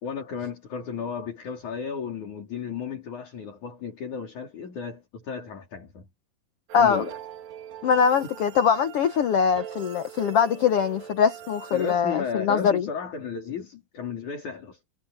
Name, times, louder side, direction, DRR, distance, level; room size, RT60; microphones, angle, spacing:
voice 1, 0.0-6.1 6.7-7.2 11.7-14.8, left 6 dB, 55° left, 5.0 m, -34 dB
voice 2, 6.7-7.0 7.8-12.9, left 7 dB, 85° left, 1.3 m, -22 dB
sound 1, 6.7-12.0, right 9 dB, 75° right, 3.6 m, -42 dB
omnidirectional pair, 4.1 m